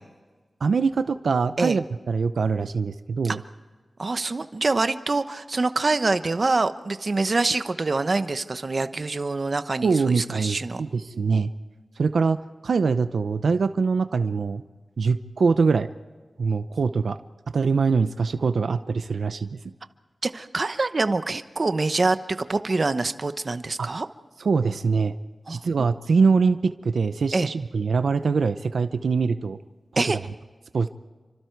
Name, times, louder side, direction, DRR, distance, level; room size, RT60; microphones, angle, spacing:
voice 1, 0.6-3.4 9.8-11.5 12.0-14.6 15.0-15.9 16.4-17.2 17.5-19.6 23.8-23.9 24.4-25.1 25.5-29.6 29.9-30.2 30.7-30.9, right 5 dB, 85° right, 11 dB, 0.7 m, -23 dB
voice 2, 4.0-10.8 20.2-24.1 25.5-25.9 27.3-27.5 30.0-30.2, right 3 dB, 45° right, 11 dB, 0.9 m, -25 dB
29.0 x 25.0 x 4.6 m, 1.3 s
wide cardioid pair, 105°, 0 cm